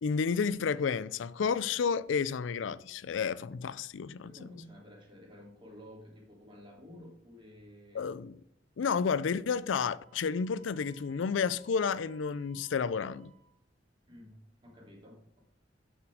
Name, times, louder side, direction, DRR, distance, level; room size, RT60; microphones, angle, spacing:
voice 1, 0.0-4.3 7.9-8.4 8.8-13.3, left 6 dB, 90° left, 0.4 m, -31 dB
voice 2, 4.2-8.1 14.1-15.4, left 1 dB, 25° right, 3.3 m, -52 dB
Wind instrument woodwind instrument, 10.0-13.6, right 6 dB, 45° right, 3.6 m, -62 dB
8.4 x 7.4 x 4.8 m
head